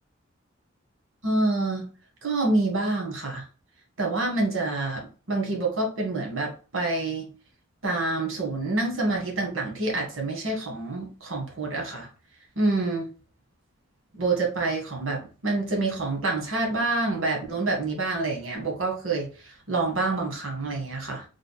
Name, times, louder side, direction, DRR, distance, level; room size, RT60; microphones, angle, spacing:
voice 1, 1.2-1.9 2.2-3.4 4.0-7.3 7.8-12.1 12.6-13.1 14.1-21.2, right 2 dB, 85° right, 1.3 m, -27 dB
3.5 x 2.1 x 4.0 m
head